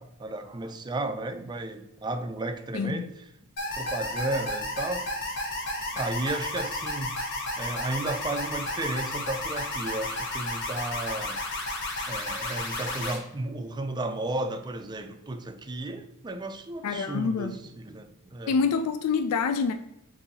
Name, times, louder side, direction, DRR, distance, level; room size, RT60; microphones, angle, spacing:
voice 1, 0.0-3.1 3.8-5.1 6.0-7.2 7.6-11.4 12.1-18.6, right 2 dB, 20° right, 0.4 m, -33 dB
voice 2, 2.7-3.1 16.8-17.6 18.5-19.7, left 5 dB, 75° left, 0.3 m, -26 dB
sound 1, 3.6-13.2, left 1 dB, 55° left, 1.1 m, -32 dB
6.8 x 2.7 x 2.7 m
head